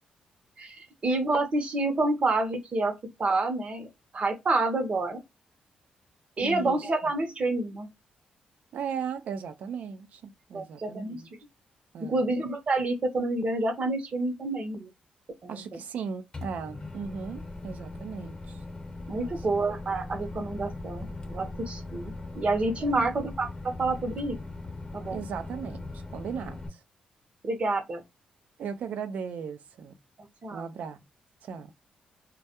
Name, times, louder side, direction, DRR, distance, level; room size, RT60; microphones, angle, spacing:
voice 1, 0.6-3.9 4.1-5.2 6.4-7.9 10.5-11.2 12.1-14.9 15.4-15.6 19.1-24.4 24.9-25.2 27.4-28.0 30.4-30.7, right 2 dB, 50° right, 0.8 m, -28 dB
voice 2, 6.4-6.9 8.7-11.3 11.9-12.3 15.5-18.6 19.2-19.6 22.8-23.1 25.1-26.8 28.6-30.0 30.5-31.0 31.4-31.7, right 6 dB, 75° right, 0.4 m, -37 dB
Microwave oven, 16.3-26.7, left 2 dB, 30° left, 0.8 m, -40 dB
2.2 x 2.1 x 2.8 m
supercardioid pair, 60°, 3 cm